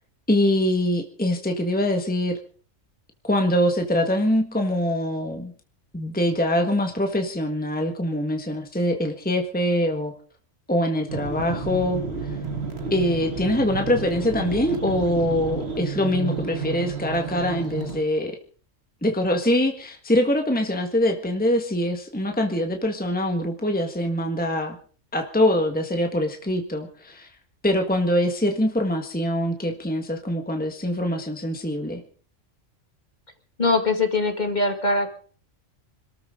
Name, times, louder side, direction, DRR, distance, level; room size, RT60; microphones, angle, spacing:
voice 1, 0.3-2.4 3.2-5.5 5.9-10.1 10.7-12.0 12.9-18.4 19.0-24.8 25.1-27.3 27.6-32.0, left 1 dB, 5° left, 4 dB, 1.6 m, -23 dB
sound 1, 11.1-18.0, right 4 dB, 55° right, 2.2 m, -31 dB
voice 2, 33.6-35.1, left 3 dB, 35° left, 5 dB, 2.3 m, -22 dB
26.0 x 13.5 x 3.8 m, 0.42 s
omnidirectional pair, 1.3 m